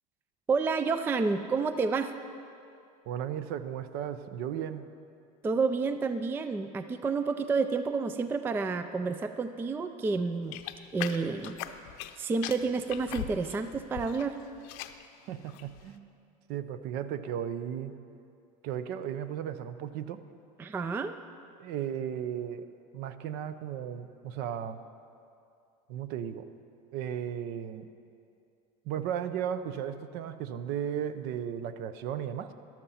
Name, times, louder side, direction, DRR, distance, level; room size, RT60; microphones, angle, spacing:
voice 1, 0.5-2.1 5.4-10.6 10.9-11.6 12.2-14.4 20.6-21.1, right 4 dB, 10° right, 10 dB, 0.3 m, -29 dB
voice 2, 3.1-4.9 15.3-16.1 16.5-17.9 18.6-20.2 21.6-22.7 22.9-24.8 25.9-26.5 26.9-27.9 28.8-32.5, right 9 dB, 55° right, 12 dB, 0.7 m, -35 dB
sound 1, 10.5-12.2 12.4-14.3 14.6-15.1 15.5-15.8, left 13 dB, 65° left, 0.7 m, -39 dB
13.5 x 12.0 x 4.2 m, 2.5 s
supercardioid pair, 125°, 20 cm